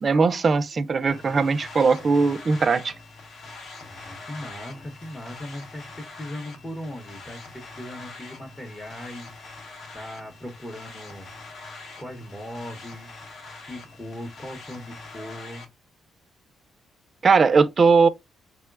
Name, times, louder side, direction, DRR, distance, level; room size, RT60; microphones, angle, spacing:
voice 1, 0.0-2.9 17.2-18.1, right 4 dB, 40° right, 0.3 m, -19 dB
sound 1, 1.1-15.7, left 3 dB, 65° left, 0.9 m, -43 dB
voice 2, 3.9-9.4 9.9-11.3 12.0-13.2 13.7-15.7, left 1 dB, 15° left, 0.7 m, -38 dB
3.7 x 2.1 x 2.3 m
cardioid pair, 85°, 0 cm